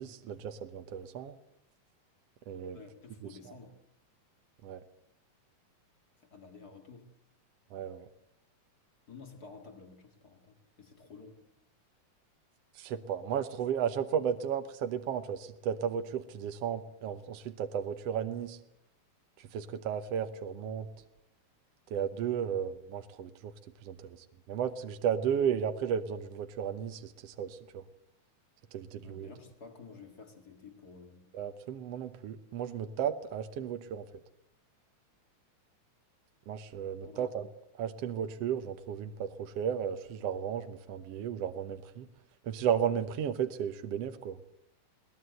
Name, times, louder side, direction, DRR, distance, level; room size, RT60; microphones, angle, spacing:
voice 1, 0.0-1.3 2.5-2.8 4.6-4.8 7.7-8.1 12.7-18.6 19.4-20.9 21.9-23.5 23.8-27.8 28.7-29.3 31.3-34.0 36.5-37.5 37.8-42.1 42.4-44.4, right 8 dB, 65° right, 1.7 m, -34 dB
voice 2, 2.7-3.8 6.2-7.1 9.1-11.4 29.0-31.3 37.0-37.3, left 4 dB, 35° left, 1.9 m, -51 dB
22.0 x 18.5 x 7.9 m
omnidirectional pair, 3.7 m